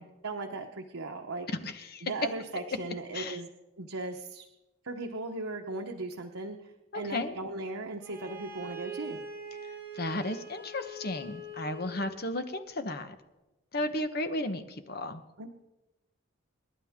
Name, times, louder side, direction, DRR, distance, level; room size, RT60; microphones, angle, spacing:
voice 1, 0.0-1.5 2.0-3.5 3.8-4.4 4.8-9.2 15.4-15.5, right 2 dB, 90° right, 2 dB, 1.1 m, -37 dB
voice 2, 1.6-2.0 3.1-3.4 7.0-7.4 9.9-13.1 13.7-15.2, left 1 dB, 50° left, 9 dB, 1.1 m, -34 dB
Bowed string instrument, 8.0-12.2, right 1 dB, 10° right, 5.6 m, -43 dB
28.5 x 11.0 x 3.7 m, 1.0 s
head